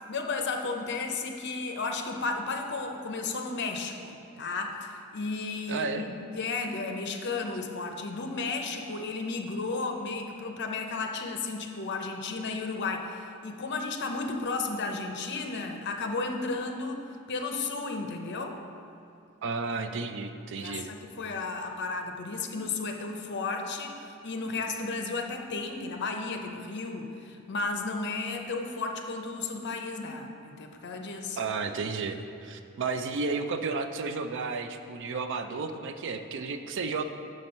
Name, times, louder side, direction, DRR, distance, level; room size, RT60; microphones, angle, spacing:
voice 1, 0.1-18.6 20.6-31.4, left 3 dB, 55° left, 4 dB, 0.7 m, -33 dB
voice 2, 5.7-6.0 19.4-20.9 31.4-37.0, right 4 dB, 60° right, 8 dB, 0.4 m, -32 dB
6.3 x 6.0 x 5.3 m, 2.6 s
head